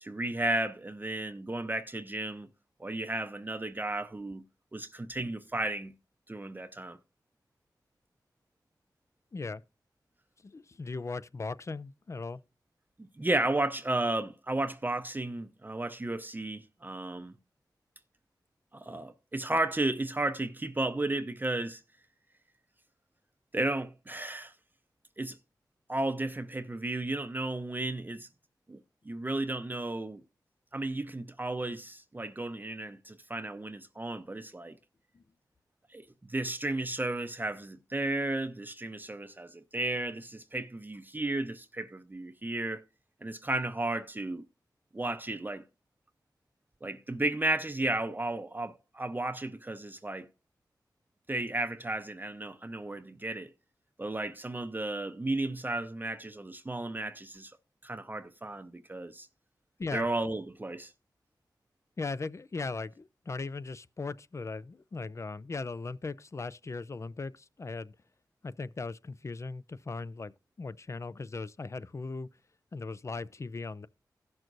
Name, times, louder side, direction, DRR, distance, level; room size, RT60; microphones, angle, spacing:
voice 1, 0.0-2.5 2.8-4.4 4.7-5.9 6.3-7.0 13.0-17.3 18.7-21.8 23.5-24.5 25.2-25.4 25.9-28.3 28.7-28.8 29.1-30.2 30.7-34.7 35.9-36.0 36.3-42.8 43.2-44.4 44.9-45.6 46.8-50.3 51.3-53.5 54.0-57.5 57.8-59.3 59.9-60.9, right 2 dB, 25° right, 0.6 m, -33 dB
voice 2, 10.4-12.4 35.1-35.2 59.8-60.1 62.0-68.0 68.4-70.3 70.6-72.3 72.7-73.9, left 3 dB, 40° left, 0.5 m, -38 dB
16.5 x 6.1 x 2.6 m
wide cardioid pair, 70°, 8 cm